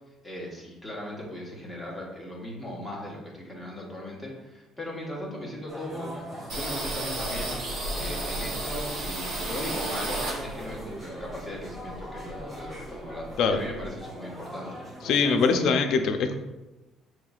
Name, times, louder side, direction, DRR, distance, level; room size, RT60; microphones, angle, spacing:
voice 1, 0.2-14.7, left 1 dB, 5° right, -4 dB, 1.4 m, -38 dB
sound 1, 5.7-15.6, equal, 20° right, 1.2 m, -41 dB
sound 2, 6.5-10.8 11.2-12.6 12.8-12.9 13.2-13.9, right 1 dB, 85° right, 1.5 m, -33 dB
voice 2, 15.0-16.3, left 5 dB, 65° left, 6 dB, 0.5 m, -22 dB
6.6 x 3.1 x 2.4 m, 1.0 s
cardioid pair, 130°, 0 cm